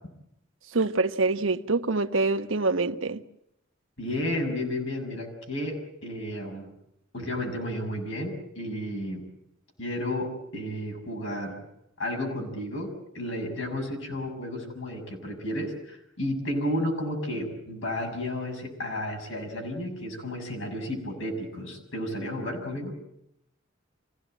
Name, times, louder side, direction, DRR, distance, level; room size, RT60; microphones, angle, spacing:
voice 1, 0.7-3.2, right 3 dB, 75° right, 1.1 m, -25 dB
voice 2, 4.0-6.7 7.1-9.3 9.8-11.6 12.0-22.9, left 1 dB, 70° left, 6.8 m, -32 dB
26.0 x 16.5 x 9.0 m
head